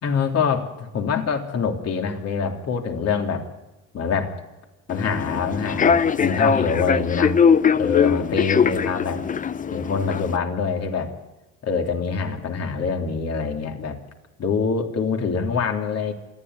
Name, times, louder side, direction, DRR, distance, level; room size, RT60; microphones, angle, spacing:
voice 1, 0.0-3.5 3.9-4.4 4.9-7.4 7.8-9.2 9.7-11.1 11.6-14.0 14.4-16.1, left 5 dB, 45° left, 3 dB, 3.4 m, -25 dB
Human voice / Subway metro underground, 4.9-10.4, left 6 dB, 20° left, 0.7 m, -21 dB
27.0 x 11.0 x 9.6 m, 1.1 s
supercardioid pair, 95°, 36 cm